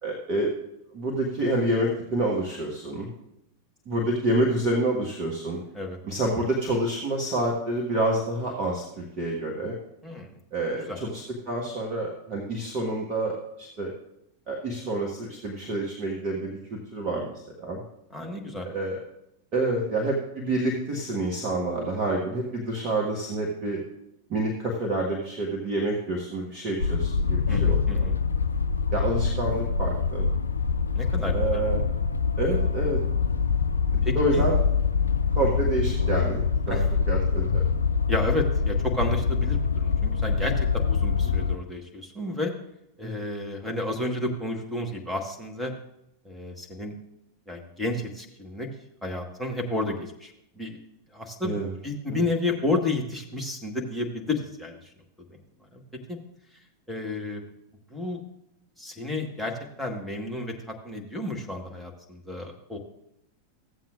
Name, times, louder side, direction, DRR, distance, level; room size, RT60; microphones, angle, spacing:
voice 1, 0.0-0.5 0.9-3.1 3.9-5.6 6.0-9.8 10.5-13.9 14.5-17.8 18.6-19.0 19.5-23.8 24.3-28.1 28.9-30.3 31.3-31.9 32.4-33.0 33.9-34.6 35.3-36.8 37.1-37.5 43.0-43.2 51.4-51.7 52.1-52.2, right 1 dB, 35° right, -1 dB, 1.5 m, -28 dB
voice 2, 18.1-18.7 27.5-28.1 30.9-31.6 34.0-34.4 36.7-36.8 38.1-42.5 43.0-45.7 46.2-46.9 47.5-48.7 49.0-50.3 50.6-50.8 51.1-54.8 55.7-55.8 56.1-56.2 56.9-57.5 57.9-58.2 58.8-59.5 59.8-62.8, left 2 dB, ahead, 2 dB, 1.5 m, -31 dB
sound 1, 26.8-41.6, left 5 dB, 75° left, 0.3 m, -25 dB
15.0 x 7.6 x 2.5 m, 0.82 s
figure-of-eight pair, 90°, 0 cm